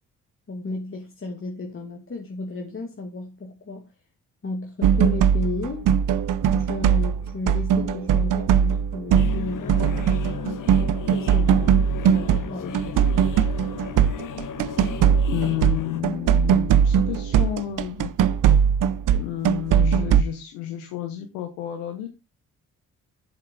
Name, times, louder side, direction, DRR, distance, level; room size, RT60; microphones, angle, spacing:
voice 1, 0.5-3.9 4.4-5.9 6.6-10.4 11.1-13.3, left 3 dB, 35° left, 2.2 m, -33 dB
sound 1, 4.8-12.5 12.7-20.2, right 8 dB, 60° right, 0.7 m, -20 dB
sound 2, 9.2-16.0, left 8 dB, 60° left, 1.1 m, -35 dB
voice 2, 15.3-18.1 19.1-22.1, left 11 dB, 85° left, 1.1 m, -30 dB
8.7 x 7.1 x 4.0 m
hypercardioid pair, 45°, 36 cm